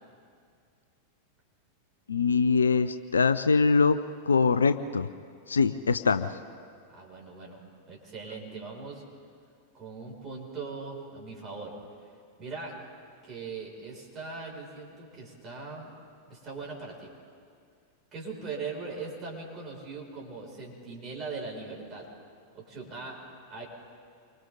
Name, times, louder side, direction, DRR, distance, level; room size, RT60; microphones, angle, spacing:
voice 1, 2.1-4.0 4.3-5.1 5.5-6.4, left 4 dB, 75° left, 12 dB, 0.5 m, -23 dB
voice 2, 6.9-7.6 7.9-9.0 9.7-11.7 12.4-12.8 13.2-15.9 16.3-17.1 18.1-22.0 22.5-23.2 23.5-23.6, right 4 dB, 30° right, -3 dB, 6.7 m, -40 dB
28.5 x 24.5 x 4.1 m, 2.2 s
figure-of-eight pair, 90°, 0 cm